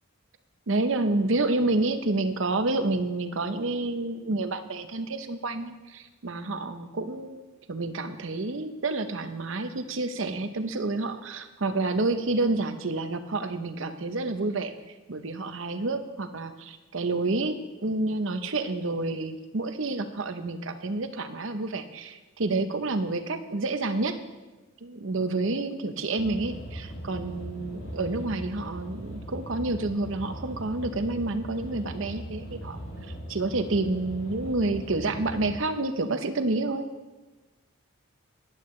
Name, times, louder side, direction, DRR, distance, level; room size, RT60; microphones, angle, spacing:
voice 1, 0.7-7.4 7.7-14.7 15.1-24.2 24.8-32.8 33.3-36.9, right 2 dB, 65° right, 9 dB, 0.8 m, -29 dB
sound 1, 26.2-35.6, equal, 90° left, 4.0 m, -39 dB
15.5 x 10.5 x 3.2 m, 1.2 s
head